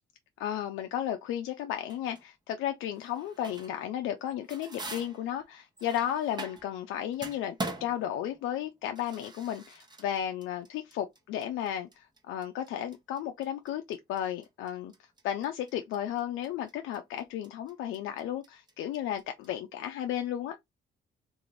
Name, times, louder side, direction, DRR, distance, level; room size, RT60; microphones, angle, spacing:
voice 1, 0.4-14.9 15.2-20.6, left 10 dB, 85° left, 0.4 m, -34 dB
sound toaster oven timer clicking - homemade, 1.9-2.3 2.9-3.9 4.2-6.8 7.1-19.5, right 2 dB, 20° right, 0.8 m, -44 dB
2.6 x 2.5 x 3.1 m
cardioid pair, 90°, 20 cm